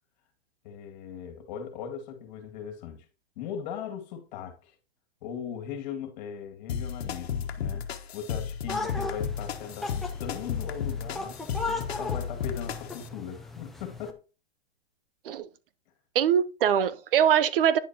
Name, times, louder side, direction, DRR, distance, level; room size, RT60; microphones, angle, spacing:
voice 1, 0.6-3.1 3.4-4.7 5.2-7.9 8.1-11.4 11.7-14.2, left 8 dB, 45° left, 2.2 m, -39 dB
sound 1, 6.7-13.1, left 7 dB, 75° left, 1.3 m, -33 dB
sound 2, 8.7-14.1, left 3 dB, ahead, 0.4 m, -37 dB
voice 2, 16.1-17.8, right 9 dB, 60° right, 0.8 m, -23 dB
10.0 x 6.5 x 2.9 m
hypercardioid pair, 155°, 31 cm